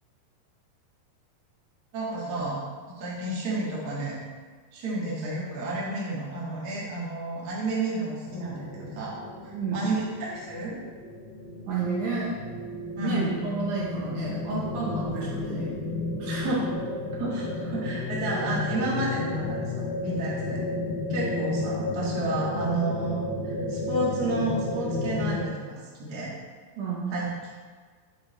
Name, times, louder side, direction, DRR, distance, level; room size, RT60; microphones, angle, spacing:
voice 1, 1.9-2.6 3.0-4.2 4.7-9.1 9.4-10.7 13.0-13.3 16.2-16.6 17.2-20.6 21.1-26.3 27.1-27.3, right 2 dB, 55° right, -6 dB, 1.0 m, -31 dB
sound 1, 8.3-25.5, left 2 dB, 80° left, 3.3 m, -32 dB
voice 2, 9.5-9.9 11.7-12.5 13.0-15.8 16.2-16.5 26.8-27.1, right 4 dB, 70° right, -5 dB, 2.1 m, -31 dB
6.8 x 5.6 x 4.0 m, 1.5 s
omnidirectional pair, 4.5 m